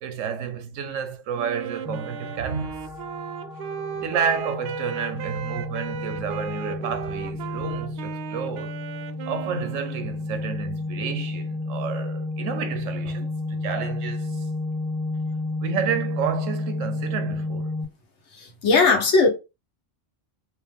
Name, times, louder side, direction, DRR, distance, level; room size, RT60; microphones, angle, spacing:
voice 1, 0.0-2.8 3.9-8.8 9.3-14.4 15.6-17.7, right 7 dB, 85° right, 1.1 m, -30 dB
Wind instrument woodwind instrument, 1.3-10.2, right 6 dB, 65° right, 0.8 m, -36 dB
sound 1, 1.8-17.8, left 2 dB, 5° right, 0.5 m, -32 dB
voice 2, 18.4-19.3, left 4 dB, 70° left, 1.4 m, -18 dB
4.5 x 2.3 x 3.4 m
omnidirectional pair, 1.3 m